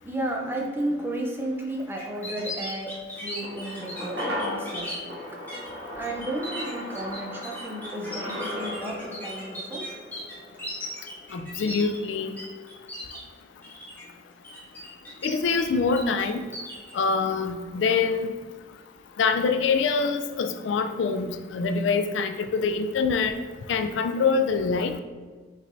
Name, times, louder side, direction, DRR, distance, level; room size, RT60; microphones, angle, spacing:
voice 1, 0.0-5.4 6.0-9.9, right 1 dB, 10° right, -1 dB, 0.5 m, -33 dB
sound 1, 2.0-5.0 5.5-5.7 6.0-12.4 12.7-13.2 13.6-14.0 14.4-15.6 15.9-16.9, equal, 10° left, 1.0 m, -38 dB
sound 2, 3.4-11.9 12.2-12.3, left 1 dB, 65° right, 0.9 m, -37 dB
voice 2, 11.3-12.4 15.2-16.4 16.9-18.3 19.2-23.4 23.7-25.0, left 5 dB, 80° left, 8 dB, 0.3 m, -25 dB
5.4 x 3.1 x 2.6 m, 1.4 s
head